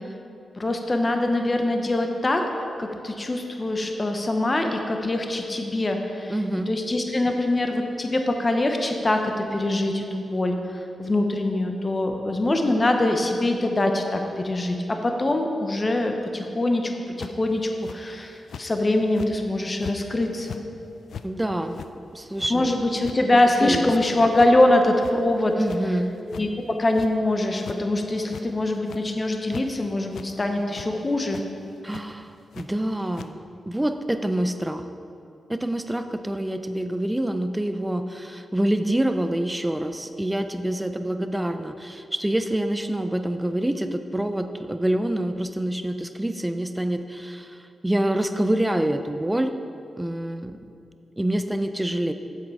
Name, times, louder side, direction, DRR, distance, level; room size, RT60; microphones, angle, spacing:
voice 1, 0.6-2.5 2.8-6.3 6.7-16.9 17.2-20.6 22.5-25.6 26.3-31.4, left 1 dB, 25° left, 4 dB, 0.7 m, -23 dB
voice 2, 6.3-6.7 21.2-21.8 22.1-22.7 23.6-23.9 25.6-26.1 31.8-34.9 35.5-49.5 50.0-50.6 51.2-52.1, right 1 dB, 10° right, 8 dB, 0.5 m, -26 dB
sound 1, 17.2-17.5 17.8-18.0 18.5-18.7 19.1-19.3 19.8-20.0 20.3-20.6 21.1-21.3 21.7-21.9 22.3-22.5 23.0-23.2 23.5-23.8 24.3-24.5 24.9-25.4 25.7-25.8 26.3-26.4 26.9-27.1 27.6-27.8 28.2-28.5 28.7-29.1 29.5-29.6 30.1-30.3 30.7-30.9 31.3-31.4 31.9-32.0 32.5-32.7 33.1-33.3, left 7 dB, 80° left, 0.3 m, -39 dB
7.5 x 7.5 x 4.9 m, 2.6 s
wide cardioid pair, 105°, 0 cm